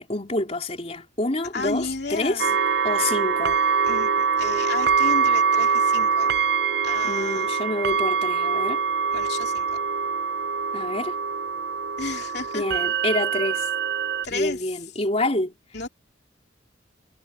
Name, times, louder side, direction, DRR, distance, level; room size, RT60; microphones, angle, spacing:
voice 1, 0.0-2.5 2.8-3.6 7.0-8.8 10.7-11.2 12.5-13.7 14.3-15.6, left 2 dB, 35° left, 3.8 m, -27 dB
voice 2, 1.5-2.6 3.9-4.1 4.4-6.3 6.8-7.5 9.1-9.8 12.0-12.6 14.2-14.7 15.7-15.9, left 3 dB, 55° left, 3.1 m, -32 dB
sound 1, 2.4-14.3, right 6 dB, 55° right, 0.5 m, -24 dB
head